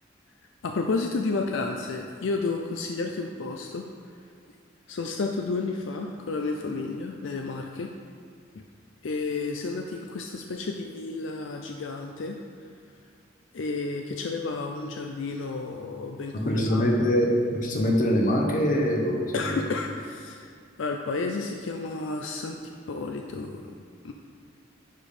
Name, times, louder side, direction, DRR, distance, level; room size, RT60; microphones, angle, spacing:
voice 1, 0.6-4.2 4.9-7.9 9.0-12.4 13.5-17.2 19.3-22.6 22.9-23.8 24.0-24.1, left 3 dB, 75° left, 3 dB, 0.5 m, -31 dB
voice 2, 16.3-19.6, equal, 45° left, 0 dB, 1.2 m, -24 dB
10.5 x 5.2 x 4.3 m, 2.2 s
head